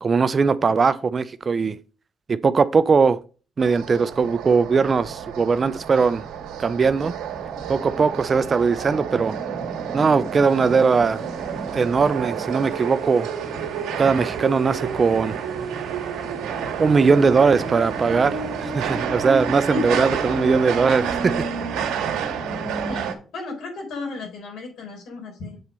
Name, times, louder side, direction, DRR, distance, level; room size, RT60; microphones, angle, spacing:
voice 1, 0.0-1.8 2.3-3.2 3.6-6.2 6.6-7.1 7.7-9.4 9.9-11.2 11.7-13.3 14.0-15.3 16.8-21.4 21.7-21.8, right 5 dB, 40° right, 0.4 m, -20 dB
sound 1, 3.6-23.1, right 6 dB, 85° right, 1.6 m, -29 dB
sound 2, 10.4-19.1, equal, ahead, 1.9 m, -47 dB
voice 2, 22.8-25.6, left 2 dB, 75° left, 4.0 m, -33 dB
7.8 x 4.2 x 5.3 m
cardioid pair, 90°, 0 cm